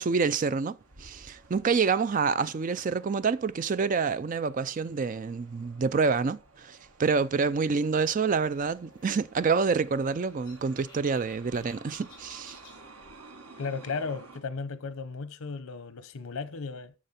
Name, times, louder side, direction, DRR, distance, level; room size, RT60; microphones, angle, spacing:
voice 1, 0.0-12.6, right 5 dB, 40° right, 0.4 m, -27 dB
sound 1, 0.8-14.4, right 3 dB, 85° right, 1.4 m, -53 dB
sound 2, 7.6-12.9, left 3 dB, 20° left, 3.7 m, -58 dB
voice 2, 13.6-16.9, left 4 dB, 85° left, 0.8 m, -35 dB
10.0 x 6.5 x 4.2 m
head